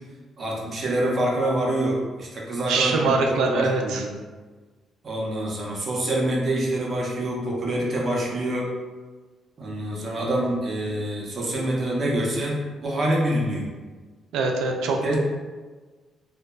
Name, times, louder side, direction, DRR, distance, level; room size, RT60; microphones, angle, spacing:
voice 1, 0.4-4.1 5.0-8.7 9.6-12.6 12.8-13.7 15.0-15.2, right 1 dB, 45° right, -3 dB, 0.6 m, -26 dB
voice 2, 2.7-4.1 14.3-15.2, right 3 dB, 90° right, 2 dB, 0.3 m, -23 dB
2.6 x 2.1 x 2.3 m, 1.3 s
cardioid pair, 90°, 0 cm